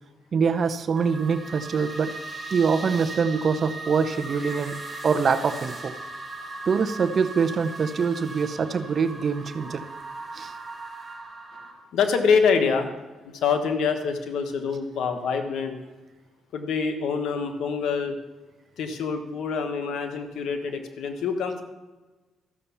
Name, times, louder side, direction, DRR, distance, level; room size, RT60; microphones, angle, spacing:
voice 1, 0.3-2.1 2.5-4.7 5.0-5.9 6.7-9.8 10.3-10.5, right 5 dB, 45° right, 9 dB, 0.8 m, -24 dB
sound 1, 1.0-11.7, right 3 dB, 20° right, 4.5 m, -38 dB
voice 2, 11.9-12.9 13.2-15.8 16.5-18.2 18.8-21.6, left 5 dB, 75° left, 6 dB, 1.3 m, -25 dB
13.5 x 6.8 x 7.1 m, 1.2 s
cardioid pair, 90°, 0 cm